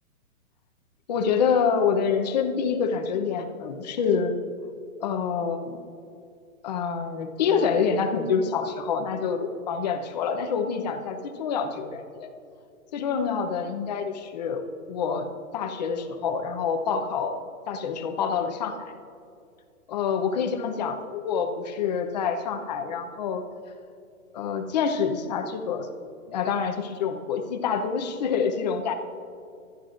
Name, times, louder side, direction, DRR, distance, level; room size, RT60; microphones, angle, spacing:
voice 1, 1.1-4.3 5.0-5.8 6.6-12.3 12.9-14.6 14.9-15.3 15.5-17.4 17.7-18.9 19.9-23.4 24.3-25.9 26.3-28.9, left 6 dB, 30° left, 6 dB, 0.8 m, -27 dB
20.5 x 12.0 x 2.6 m, 2.4 s
hypercardioid pair, 160°, 43 cm